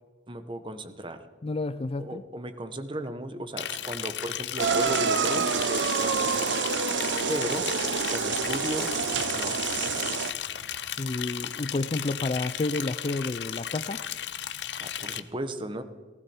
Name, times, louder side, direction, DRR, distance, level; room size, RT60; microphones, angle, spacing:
voice 1, 0.3-1.2 2.0-6.6 7.3-7.7 8.1-9.0 9.3-9.6 14.8-15.8, right 1 dB, 30° right, 10 dB, 1.1 m, -35 dB
voice 2, 1.4-2.2 11.0-14.0, left 2 dB, 30° left, 14 dB, 0.4 m, -30 dB
Liquid, 3.6-15.2, left 10 dB, 70° left, 0.7 m, -35 dB
sound 1, 4.6-10.3, right 5 dB, 85° right, 0.8 m, -27 dB
18.5 x 16.0 x 4.4 m, 1.5 s
head